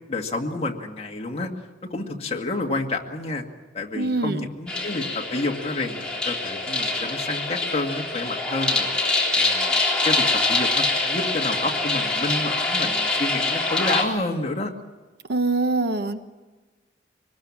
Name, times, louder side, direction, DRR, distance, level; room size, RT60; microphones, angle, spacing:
voice 1, 0.0-1.5 1.9-3.4 3.7-9.7 10.1-14.7, left 2 dB, 35° left, 2 dB, 2.0 m, -29 dB
voice 2, 3.9-4.4 15.3-16.2, right 3 dB, 60° right, 9 dB, 1.1 m, -23 dB
sound 1, 4.7-14.0, left 2 dB, 5° left, 3.5 m, -24 dB
24.5 x 20.0 x 7.3 m, 1.2 s
head